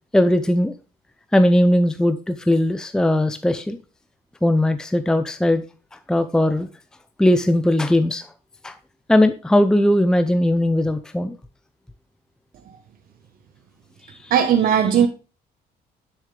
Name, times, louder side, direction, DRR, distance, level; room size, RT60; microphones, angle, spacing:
voice 1, 0.1-0.7 1.3-3.8 4.4-5.6 6.1-6.7 7.2-8.3 8.6-8.8 9.1-11.4 14.2-14.3, left 1 dB, 5° left, 0.6 m, -18 dB
voice 2, 14.3-15.1, right 8 dB, 60° right, 1.1 m, -17 dB
10.0 x 7.3 x 3.3 m
cardioid pair, 110°, 17 cm